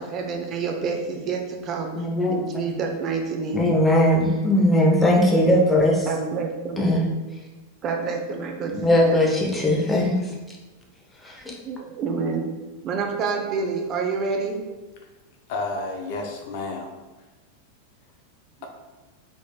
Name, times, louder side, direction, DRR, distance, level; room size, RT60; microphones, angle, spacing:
voice 1, 0.0-1.9 2.3-3.7 6.0-6.8 7.8-8.7 9.1-9.2 11.6-12.5 12.8-14.6, right 5 dB, 30° right, 2 dB, 0.5 m, -28 dB
voice 2, 1.9-2.3 3.5-6.1 6.8-7.1 8.7-10.3 11.2-11.5, left 1 dB, 10° left, -2 dB, 0.8 m, -19 dB
voice 3, 15.5-16.9, left 3 dB, 45° left, 2 dB, 0.5 m, -30 dB
4.0 x 3.4 x 2.3 m, 1.2 s
figure-of-eight pair, 90°, 0 cm